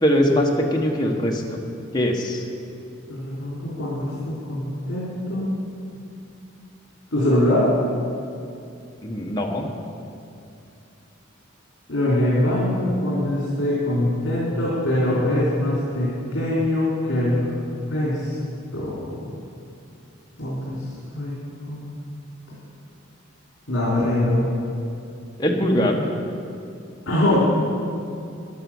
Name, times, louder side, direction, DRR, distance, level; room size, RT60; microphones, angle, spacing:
voice 1, 0.0-1.4 1.9-2.4 9.0-9.7 25.4-26.0, equal, 20° left, 0 dB, 1.3 m, -21 dB
voice 2, 3.1-5.5 7.1-7.7 11.9-17.5 17.9-18.3 18.7-19.1 20.4-20.8 21.1-21.3 21.7-22.0 23.7-24.5 27.1-27.5, left 1 dB, 65° left, -8 dB, 3.2 m, -23 dB
12.5 x 10.5 x 7.2 m, 2.5 s
head